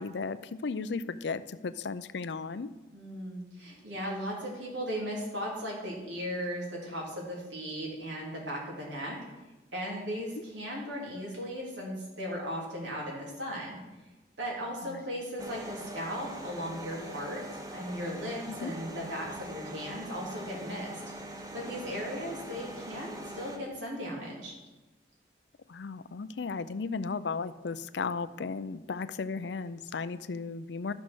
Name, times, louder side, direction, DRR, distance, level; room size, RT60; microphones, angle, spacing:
voice 1, 0.0-2.7 14.8-15.0 18.5-18.7 25.7-30.9, left 4 dB, 75° left, 13 dB, 0.5 m, -35 dB
voice 2, 2.9-9.2 9.7-13.8 14.4-21.0 21.5-24.5, equal, 90° right, -3 dB, 3.5 m, -37 dB
sound 1, 15.4-23.6, right 1 dB, 20° right, 0.8 m, -43 dB
12.5 x 6.2 x 6.3 m, 1.1 s
head